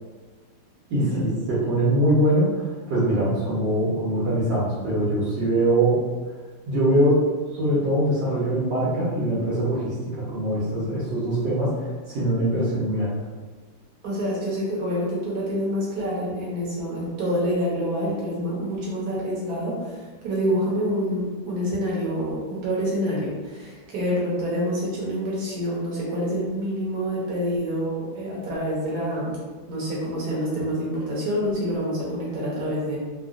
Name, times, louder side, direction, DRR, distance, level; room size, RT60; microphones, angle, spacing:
voice 1, 0.9-2.5 2.9-6.0 6.7-7.2 7.5-11.7 12.1-13.1, right 1 dB, 80° right, -10 dB, 1.7 m, -22 dB
voice 2, 14.0-29.4 29.7-33.0, equal, 60° right, -5 dB, 1.4 m, -27 dB
3.7 x 2.4 x 2.4 m, 1.3 s
omnidirectional pair, 2.0 m